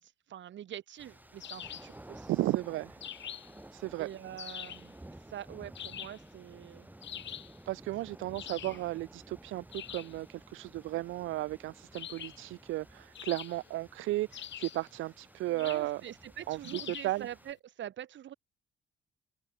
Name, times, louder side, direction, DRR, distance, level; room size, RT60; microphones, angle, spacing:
voice 1, 0.0-2.4 4.0-6.9 15.5-18.3, right 11 dB, 70° right, 3.1 m, -45 dB
sound 1, 1.0-17.5, right 1 dB, 10° right, 2.5 m, -54 dB
sound 2, 1.4-2.0 3.0-3.6 4.4-4.9 5.7-6.3 7.0-7.6 8.3-8.9 9.7-10.2 11.9-12.5 13.1-13.8 14.3-14.9 15.6-15.9 16.6-17.2, left 10 dB, 65° left, 3.4 m, -44 dB
voice 2, 2.3-3.0 3.7-4.1 7.7-16.0 16.5-17.3, right 17 dB, 90° right, 0.9 m, -34 dB
open air
cardioid pair, 90°, 20 cm